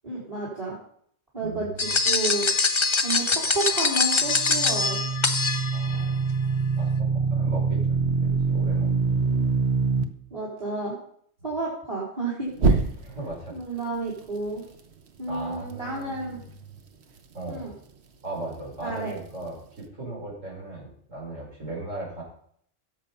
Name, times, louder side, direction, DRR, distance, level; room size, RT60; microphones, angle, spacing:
voice 1, 0.0-0.8 1.3-2.5 3.0-5.1 10.3-11.0 11.4-12.8 13.5-14.6 15.2-16.4 17.5-17.7 18.8-19.1, right 3 dB, 30° right, -5 dB, 3.5 m, -31 dB
voice 2, 1.4-2.0 5.7-8.9 9.2-9.3 13.0-13.8 15.3-16.8 17.3-17.7 18.2-22.2, right 2 dB, 85° right, -5 dB, 5.8 m, -38 dB
sound 1, 1.8-6.0, left 4 dB, 30° left, 0.7 m, -24 dB
sound 2, 4.3-10.0 12.6-13.3, right 4 dB, 60° right, 1.2 m, -24 dB
16.5 x 7.3 x 5.5 m, 0.63 s
omnidirectional pair, 1.3 m